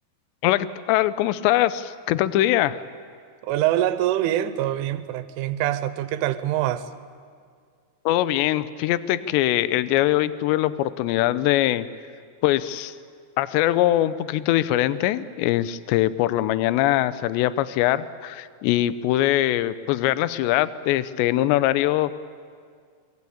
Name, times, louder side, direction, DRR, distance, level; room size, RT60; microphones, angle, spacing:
voice 1, 0.4-2.8 8.1-11.9 12.4-12.9 13.4-22.1, left 14 dB, 80° left, 15 dB, 2.8 m, -22 dB
voice 2, 3.4-6.9, right 13 dB, 90° right, 12 dB, 3.4 m, -24 dB
24.5 x 22.5 x 8.6 m, 2.1 s
omnidirectional pair, 5.4 m